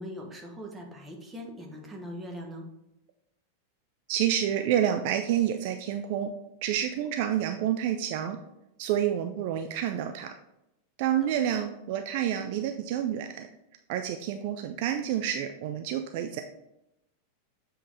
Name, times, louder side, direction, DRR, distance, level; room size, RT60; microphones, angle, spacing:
voice 1, 0.0-2.7, equal, 10° right, 1 dB, 1.2 m, -41 dB
voice 2, 4.1-6.3 6.6-8.4 8.8-10.3 11.0-13.5 13.9-16.4, right 10 dB, 50° right, 6 dB, 0.4 m, -28 dB
7.4 x 3.7 x 4.1 m, 0.87 s
figure-of-eight pair, 90°, 0 cm